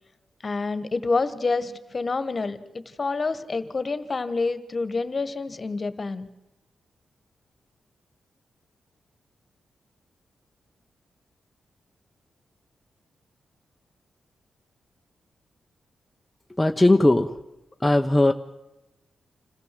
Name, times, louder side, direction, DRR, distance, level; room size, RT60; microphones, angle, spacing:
voice 1, 0.4-6.3, left 3 dB, 40° left, 12 dB, 1.6 m, -28 dB
voice 2, 16.6-17.3 17.8-18.3, left 1 dB, 10° left, 4 dB, 0.9 m, -18 dB
27.0 x 15.0 x 7.7 m, 0.96 s
cardioid pair, 75°, 0 cm